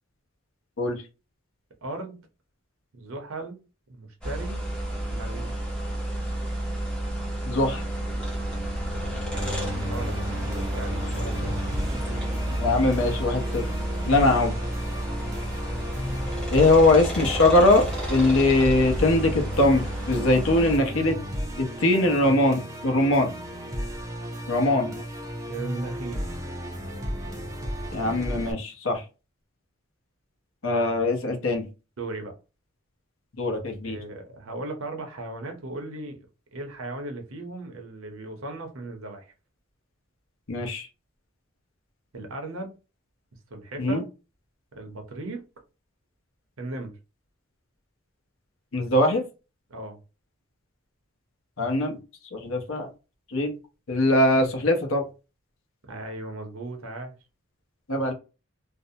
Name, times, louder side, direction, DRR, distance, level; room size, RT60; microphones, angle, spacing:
voice 1, 1.8-2.2 2.9-3.6 3.9-4.6 5.0-5.6 9.8-10.2 10.4-12.2 25.5-26.2 32.0-32.3 33.8-36.2 36.5-39.3 42.1-42.8 43.5-44.0 44.7-45.4 46.6-47.0 49.7-50.0 55.9-57.1, right 2 dB, 70° right, 4 dB, 0.7 m, -37 dB
sound 1, 4.2-20.8, right 1 dB, 5° left, 0.8 m, -31 dB
voice 2, 7.4-7.8 12.6-13.7 14.1-14.5 16.5-21.2 21.6-23.3 24.5-25.0 27.9-29.0 30.6-31.7 33.4-34.0 40.5-40.9 43.8-44.0 48.7-49.2 51.6-52.0 52.3-52.9 53.3-53.5 53.9-55.0 57.9-58.1, left 2 dB, 70° left, 3 dB, 0.7 m, -21 dB
Musical instrument, 9.3-28.5, equal, 15° right, 0.4 m, -34 dB
2.5 x 2.1 x 2.6 m, 0.30 s
head